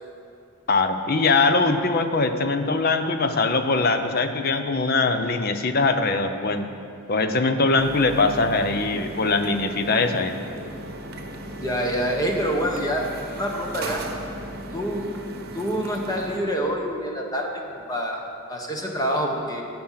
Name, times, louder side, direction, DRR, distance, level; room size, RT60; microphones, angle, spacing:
voice 1, 0.7-6.7 7.1-10.4, left 3 dB, 45° left, 8 dB, 0.7 m, -22 dB
sound 1, 7.8-16.4, right 1 dB, 50° right, 1.0 m, -37 dB
voice 2, 11.6-13.1 13.4-14.0 14.7-15.1 15.5-18.2 18.5-19.6, equal, 15° left, 0 dB, 1.1 m, -26 dB
17.5 x 6.1 x 5.7 m, 2.5 s
head